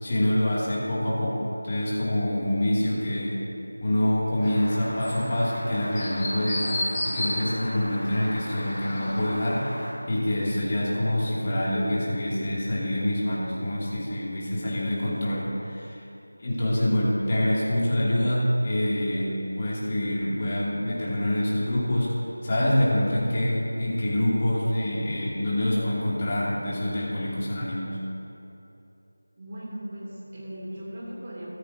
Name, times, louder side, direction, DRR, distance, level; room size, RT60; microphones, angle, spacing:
voice 1, 0.0-3.4 3.8-9.8 10.1-16.0 16.4-22.1 22.4-28.0, left 1 dB, 30° left, -7 dB, 2.6 m, -26 dB
Chirp tweet, 4.4-9.9, left 1 dB, 15° left, 2.9 m, -33 dB
voice 2, 29.4-31.5, equal, 35° right, -5 dB, 2.9 m, -38 dB
14.5 x 14.5 x 2.8 m, 2.9 s
figure-of-eight pair, 170°, 0 cm